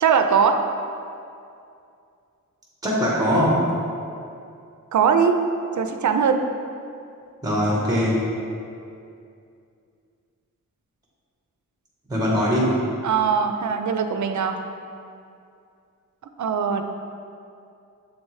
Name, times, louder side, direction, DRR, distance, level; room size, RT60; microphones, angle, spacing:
voice 1, 0.0-0.6 4.9-5.4 5.7-6.4 13.0-14.6 16.4-16.8, right 6 dB, 65° right, 7 dB, 0.4 m, -20 dB
voice 2, 2.8-3.7 7.4-8.2 12.1-12.8, equal, 10° right, -4 dB, 1.0 m, -21 dB
7.2 x 4.3 x 3.1 m, 2.5 s
wide cardioid pair, 120°, 32 cm